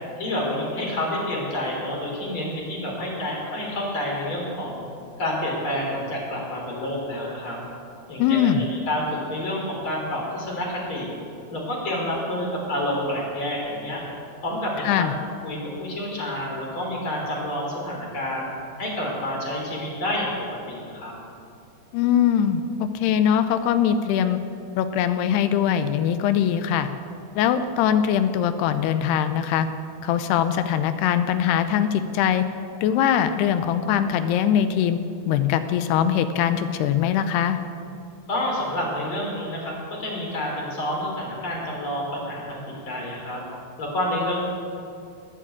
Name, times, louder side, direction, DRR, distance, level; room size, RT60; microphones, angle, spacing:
voice 1, 0.2-4.8 5.2-7.6 8.1-11.1 11.5-14.0 14.4-15.1 15.4-18.5 18.8-20.3 20.7-21.1 38.3-42.6 42.9-43.4 43.8-44.4, left 1 dB, 30° left, -2 dB, 3.9 m, -28 dB
voice 2, 8.2-8.6 14.9-15.1 21.9-24.4 24.8-26.9 27.4-29.7 30.0-32.4 32.8-35.0 35.3-37.6, left 9 dB, 80° left, 10 dB, 2.6 m, -22 dB
20.0 x 7.5 x 8.6 m, 2.4 s
omnidirectional pair, 4.9 m